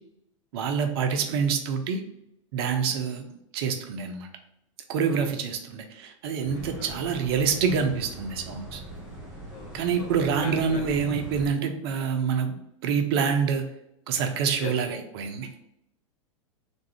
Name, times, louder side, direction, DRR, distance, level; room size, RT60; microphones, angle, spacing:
voice 1, 0.5-2.0 2.5-3.2 3.5-4.3 4.9-8.8 9.7-12.6 12.8-13.7 14.1-15.5, right 6 dB, 50° right, 5 dB, 0.6 m, -26 dB
sound 1, 6.4-11.5, right 1 dB, 5° right, 1.6 m, -41 dB
voice 2, 6.5-7.0 9.5-10.1 10.4-11.0 14.6-14.7, left 4 dB, 45° left, 2 dB, 0.9 m, -40 dB
3.6 x 2.6 x 4.4 m, 0.82 s
figure-of-eight pair, 90°, 17 cm